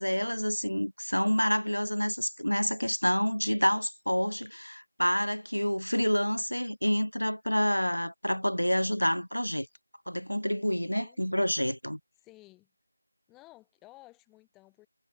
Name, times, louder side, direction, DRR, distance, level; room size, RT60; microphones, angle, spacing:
voice 1, 0.0-9.7 10.1-12.0, equal, 85° left, 0.5 m, -28 dB
voice 2, 10.8-11.3 12.2-12.7 13.3-14.9, left 19 dB, 5° left, 5.2 m, -55 dB
figure-of-eight pair, 165°, 0 cm